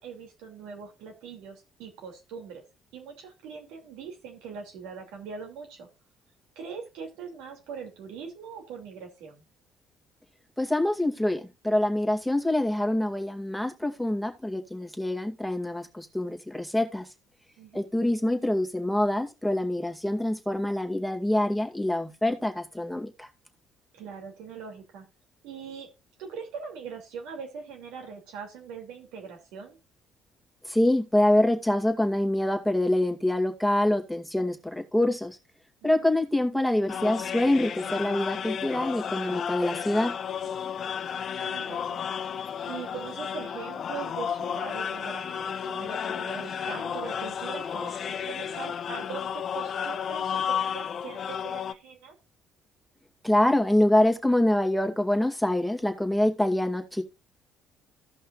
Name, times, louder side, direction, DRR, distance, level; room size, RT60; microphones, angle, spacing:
voice 1, 0.0-2.6 2.9-5.9 6.5-9.4 17.6-17.9 23.9-25.1 25.4-25.9 26.2-29.8 35.8-36.1 41.4-52.1, right 6 dB, 80° right, 2.7 m, -41 dB
voice 2, 10.6-17.0 17.7-23.3 30.7-35.4 35.8-40.2 53.2-57.0, left 1 dB, ahead, 2.2 m, -25 dB
sound 1, 36.9-51.7, left 8 dB, 55° left, 0.6 m, -32 dB
16.5 x 5.5 x 2.5 m
supercardioid pair, 65°, 0 cm